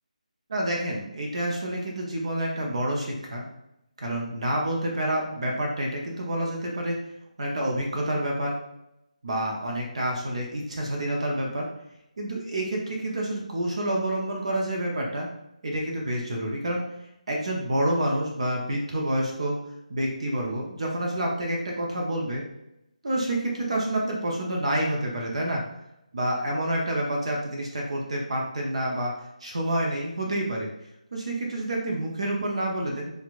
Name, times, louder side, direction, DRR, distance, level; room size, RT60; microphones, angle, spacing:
voice 1, 0.5-3.4 4.0-7.0 7.4-8.6 9.2-11.7 12.2-15.3 15.6-16.8 17.3-19.6 19.9-22.4 23.0-25.6 26.1-29.1 29.4-30.7 31.1-33.1, right 1 dB, 50° right, -1 dB, 0.8 m, -28 dB
4.4 x 2.4 x 2.4 m, 0.85 s
figure-of-eight pair, 155°, 4 cm